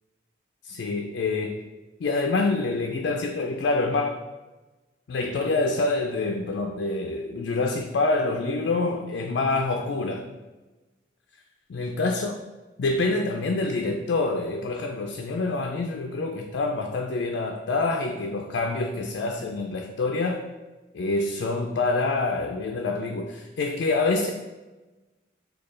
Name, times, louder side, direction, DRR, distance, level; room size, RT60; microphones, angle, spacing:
voice 1, 0.6-1.6 2.0-4.2 5.1-10.3 11.7-12.3 12.8-20.5 20.9-24.3, left 3 dB, 70° left, 2 dB, 0.4 m, -26 dB
6.4 x 2.3 x 3.2 m, 1.2 s
head